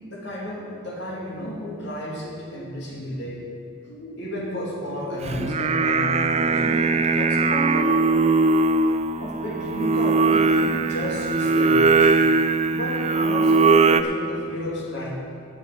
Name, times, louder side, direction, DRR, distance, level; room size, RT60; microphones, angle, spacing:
voice 1, 0.0-3.5 3.9-8.0 9.2-12.2 12.7-15.1, left 1 dB, 60° left, -3 dB, 2.6 m, -32 dB
Singing, 5.2-14.0, right 3 dB, 35° right, 0.4 m, -20 dB
18.0 x 7.3 x 5.1 m, 2.4 s
head